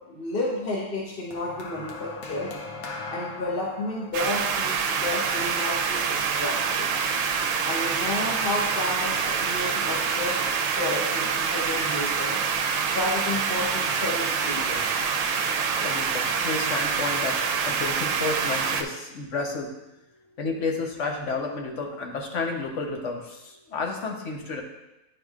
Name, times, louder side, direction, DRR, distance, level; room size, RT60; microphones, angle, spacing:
voice 1, 0.1-2.5 3.1-6.9 7.6-10.4 10.8-12.4 12.9-15.0, left 2 dB, 45° left, -4 dB, 1.1 m, -31 dB
sound 1, 1.3-5.7 6.7-6.9, left 3 dB, 80° left, 1.3 m, -39 dB
sound 2, 4.1-18.8, right 6 dB, 70° right, 0.9 m, -26 dB
voice 2, 15.7-17.4 17.6-19.7 20.4-24.6, left 3 dB, 60° left, 2 dB, 1.2 m, -31 dB
10.0 x 4.9 x 2.4 m, 0.94 s
omnidirectional pair, 1.5 m